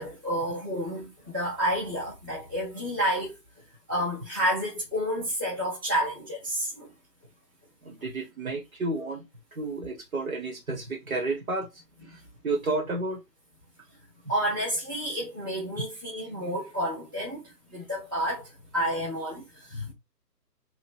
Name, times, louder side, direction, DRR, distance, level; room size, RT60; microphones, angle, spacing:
voice 1, 0.0-3.4 3.9-6.9 14.3-18.5 18.7-19.9, equal, 15° right, 0.7 m, -30 dB
voice 2, 7.8-9.2 9.5-11.7 12.4-13.2, right 2 dB, 60° right, 1.2 m, -31 dB
3.0 x 2.6 x 4.2 m
figure-of-eight pair, 145°, 48 cm